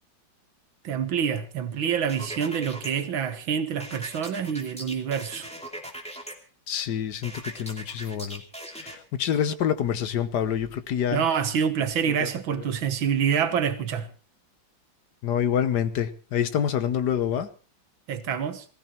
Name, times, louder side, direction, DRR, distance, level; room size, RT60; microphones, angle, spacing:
voice 1, 0.8-5.5 11.1-14.1 18.1-18.7, right 7 dB, 85° right, 2.1 m, -27 dB
sound 1, 2.1-2.9 3.8-6.3 7.2-9.0, right 1 dB, 5° left, 2.6 m, -39 dB
voice 2, 6.7-8.4 8.8-11.2 12.1-12.3 15.2-17.5, left 9 dB, 60° left, 1.6 m, -27 dB
18.0 x 15.5 x 4.3 m
omnidirectional pair, 2.1 m